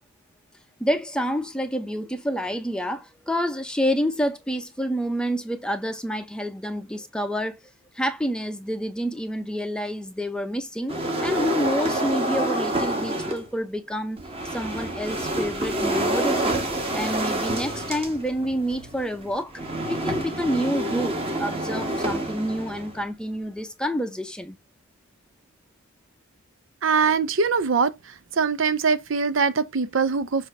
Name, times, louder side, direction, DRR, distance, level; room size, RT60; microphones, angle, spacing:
voice 1, 0.8-16.6 16.9-19.6 19.9-24.6, equal, 5° left, 0.6 m, -28 dB
sound 1, 10.9-13.5 14.2-23.0, right 1 dB, 25° right, 1.2 m, -28 dB
voice 2, 26.8-27.9 28.4-30.5, right 5 dB, 60° right, 0.5 m, -22 dB
7.3 x 2.7 x 5.2 m
head